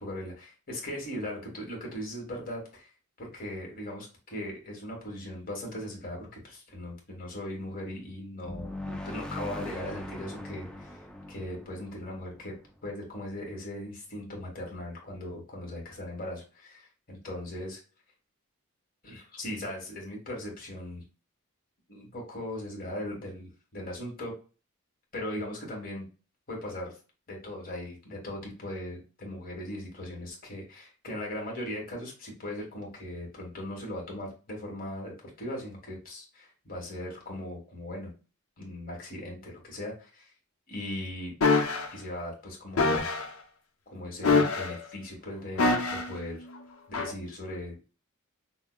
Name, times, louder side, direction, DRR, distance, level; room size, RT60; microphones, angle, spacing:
voice 1, 0.0-2.9 3.2-11.0 11.3-12.5 12.8-17.8 19.0-21.0 21.9-24.3 25.1-26.1 26.5-27.0 27.3-38.1 38.6-40.3 40.7-41.3 41.9-43.1 43.9-46.4 47.0-47.9, left 1 dB, 45° left, -1 dB, 1.4 m, -39 dB
sound 1, 8.4-13.1, left 1 dB, 5° left, 0.4 m, -40 dB
sound 2, 41.4-41.9 42.8-43.3 44.2-44.9 45.6-46.2 46.9-47.1, left 3 dB, 90° left, 0.6 m, -24 dB
5.4 x 2.1 x 2.2 m, 0.35 s
head